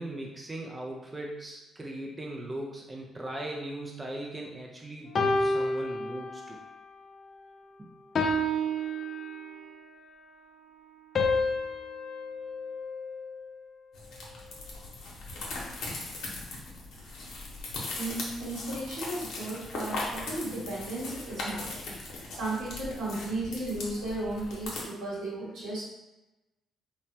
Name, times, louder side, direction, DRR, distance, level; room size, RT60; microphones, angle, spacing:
voice 1, 0.0-6.6 7.8-7.9, right 1 dB, 20° right, -1 dB, 0.4 m, -39 dB
sound 1, 5.2-6.7 7.2-7.5 8.2-9.8 11.2-13.5, left 1 dB, 50° left, 0.4 m, -30 dB
sound 2, 13.9-24.8, left 2 dB, 80° left, 0.7 m, -39 dB
voice 2, 17.9-25.9, right 2 dB, 85° right, -7 dB, 1.3 m, -35 dB
3.2 x 2.0 x 2.7 m, 1.0 s
cardioid pair, 90°, 0 cm